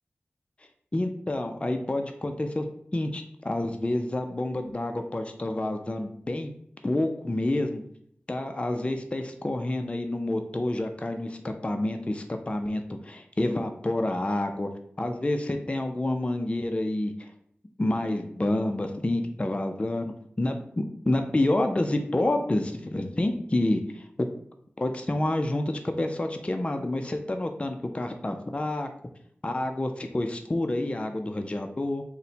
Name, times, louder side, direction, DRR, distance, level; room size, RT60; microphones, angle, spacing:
voice 1, 0.9-2.7 2.9-6.5 6.8-7.8 8.3-14.7 15.0-17.3 17.8-24.3 24.8-28.9 29.4-32.0, left 1 dB, 30° left, 5 dB, 0.4 m, -28 dB
4.1 x 2.1 x 4.0 m, 0.67 s
cardioid pair, 45°, 4 cm